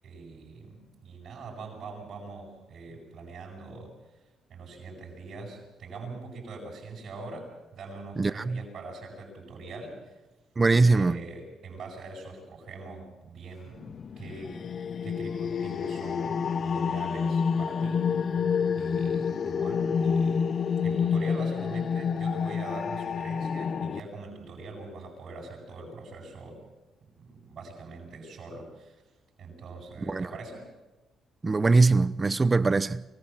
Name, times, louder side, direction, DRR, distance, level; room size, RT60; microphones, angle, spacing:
voice 1, 0.0-3.9 4.5-10.1 10.9-14.6 15.0-18.2 18.8-20.5 20.8-26.6 27.0-29.0 29.4-30.7, right 3 dB, 65° right, 7.9 m, -43 dB
voice 2, 8.2-8.6 10.6-11.2 30.1-30.3 31.4-33.0, right 3 dB, 25° right, 0.8 m, -22 dB
sound 1, 13.8-24.0, left 6 dB, 50° left, 0.7 m, -28 dB
24.5 x 15.5 x 7.6 m
cardioid pair, 90°, 0 cm